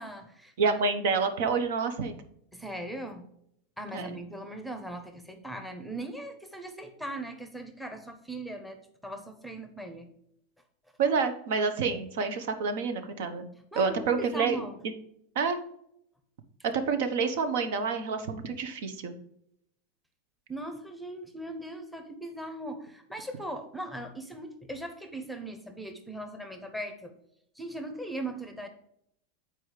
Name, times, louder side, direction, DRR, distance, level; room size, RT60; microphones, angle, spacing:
voice 1, 0.0-0.8 2.5-3.2 3.8-8.8 9.0-10.1 13.7-14.7 20.5-27.1 27.5-28.7, right 1 dB, ahead, 6 dB, 0.8 m, -39 dB
voice 2, 0.6-2.1 3.9-4.2 11.0-13.5 13.7-14.7 15.3-15.6 16.6-19.1, right 5 dB, 70° right, 8 dB, 1.1 m, -28 dB
8.5 x 4.6 x 4.9 m, 0.73 s
supercardioid pair, 160°, 0 cm